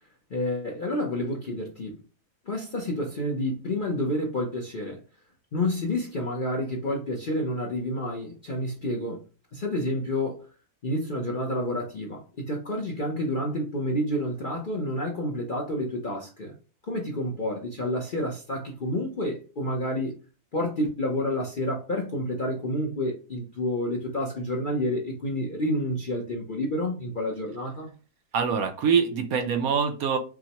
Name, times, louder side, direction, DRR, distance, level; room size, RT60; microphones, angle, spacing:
voice 1, 0.3-2.0 2.5-5.0 5.5-9.2 9.5-10.4 10.8-16.5 16.9-20.2 20.5-27.9, left 1 dB, 45° left, 0.6 m, -29 dB
voice 2, 28.3-30.2, right 6 dB, 65° right, 1.0 m, -24 dB
6.0 x 2.1 x 2.9 m
omnidirectional pair, 1.8 m